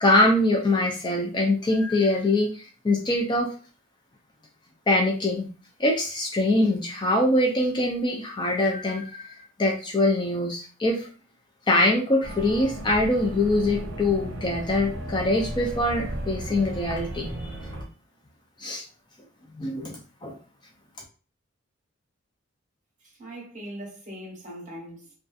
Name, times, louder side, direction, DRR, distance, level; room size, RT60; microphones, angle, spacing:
voice 1, 0.0-2.5 2.8-3.5 4.9-5.5 5.8-9.3 9.6-11.1 11.7-17.3 18.6-18.8 19.6-20.4, left 1 dB, 25° left, 0.4 m, -23 dB
sound 1, 12.2-17.8, right 1 dB, 70° right, 0.7 m, -35 dB
voice 2, 23.0-25.1, equal, 40° right, 1.1 m, -40 dB
2.6 x 2.4 x 2.3 m
head